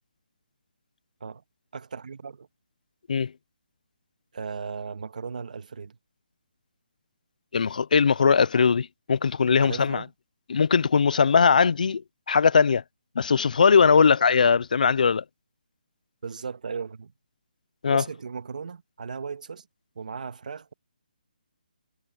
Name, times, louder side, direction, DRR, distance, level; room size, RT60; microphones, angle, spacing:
voice 1, 1.7-2.5 4.3-6.0 9.6-10.1 16.2-17.1 17.9-19.7 19.9-20.7, right 5 dB, 55° right, 1.6 m, -36 dB
voice 2, 7.5-10.0 10.5-12.0 12.3-12.8 13.2-15.2 17.8-18.0, left 5 dB, 60° left, 0.5 m, -20 dB
hypercardioid pair, 170°, 5 cm